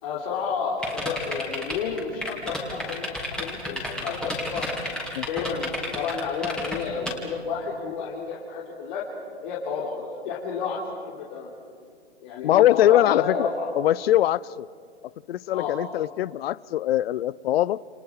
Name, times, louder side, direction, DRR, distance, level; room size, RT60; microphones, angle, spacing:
voice 1, 0.0-4.6 5.2-9.0 9.4-10.8 11.1-11.5 12.2-13.7 15.5-15.8, left 5 dB, 45° left, 4.1 m, -31 dB
sound 1, 0.8-7.1, equal, ahead, 4.2 m, -31 dB
voice 2, 12.4-13.5 13.8-14.7 15.3-17.8, left 13 dB, 60° left, 0.6 m, -22 dB
30.0 x 29.5 x 4.9 m
hypercardioid pair, 125°, 34 cm